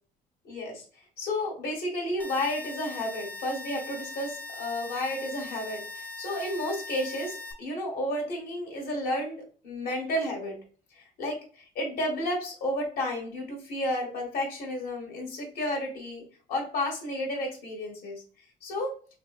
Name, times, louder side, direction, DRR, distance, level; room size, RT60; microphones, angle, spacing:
voice 1, 0.4-0.8 1.2-10.6 10.9-16.2 16.5-18.2 18.6-18.9, left 1 dB, 70° left, -1 dB, 1.8 m, -32 dB
sound 1, 2.2-7.5, left 2 dB, 10° left, 0.7 m, -40 dB
5.6 x 2.2 x 2.5 m, 0.41 s
cardioid pair, 110°, 17 cm